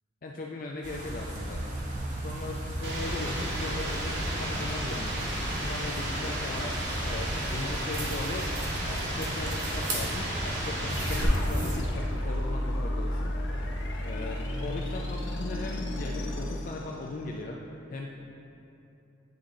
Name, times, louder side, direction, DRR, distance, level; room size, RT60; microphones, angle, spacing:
voice 1, 0.2-1.8 2.2-5.3 5.6-6.8 7.0-13.6 14.0-17.6 17.9-18.1, left 2 dB, 45° left, -1 dB, 0.3 m, -38 dB
sound 1, 0.8-11.8, right 1 dB, 45° right, 1.0 m, -36 dB
sound 2, 2.8-11.2, right 1 dB, 70° right, 1.1 m, -33 dB
sound 3, 11.0-17.4, left 1 dB, 85° left, 0.7 m, -33 dB
9.3 x 3.6 x 3.8 m, 2.7 s
head